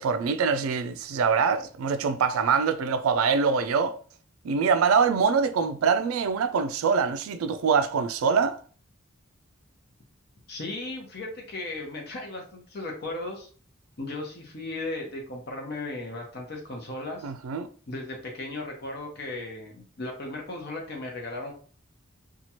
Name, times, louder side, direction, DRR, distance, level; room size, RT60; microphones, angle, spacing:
voice 1, 0.0-4.0 4.4-8.6 17.2-17.7, right 5 dB, 85° right, 0.4 m, -24 dB
voice 2, 10.5-13.5 14.0-17.3 17.9-21.5, left 2 dB, 50° left, 0.9 m, -36 dB
2.9 x 2.4 x 2.9 m
head